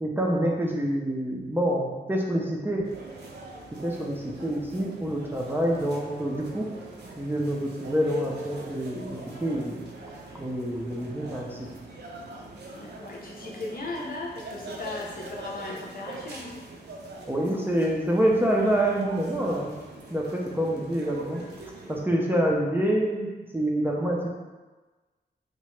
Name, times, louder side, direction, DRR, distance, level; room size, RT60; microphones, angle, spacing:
voice 1, 0.0-2.9 3.8-6.6 7.2-9.8 10.4-11.6 17.3-19.7 20.1-21.4 21.9-23.3 23.5-24.3, right 1 dB, 10° right, -3 dB, 0.4 m, -26 dB
sound 1, 2.8-22.0, right 2 dB, 65° right, 0.5 m, -43 dB
voice 2, 12.7-16.6, left 2 dB, 55° left, -3 dB, 0.6 m, -37 dB
2.8 x 2.1 x 3.1 m, 1.2 s
cardioid pair, 75°, 18 cm